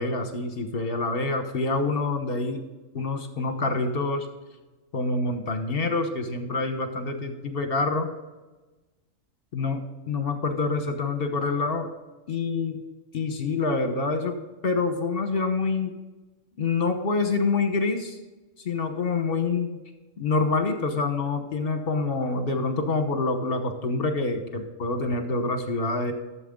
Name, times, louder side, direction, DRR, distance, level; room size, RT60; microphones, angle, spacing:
voice 1, 0.0-2.6 2.9-4.3 4.9-8.1 9.5-9.8 10.1-11.9 12.3-12.8 13.1-14.4 14.6-15.9 16.6-18.2 18.6-19.8 20.2-26.1, left 3 dB, 50° left, 6 dB, 1.3 m, -26 dB
12.5 x 7.2 x 3.8 m, 1.1 s
omnidirectional pair, 1.3 m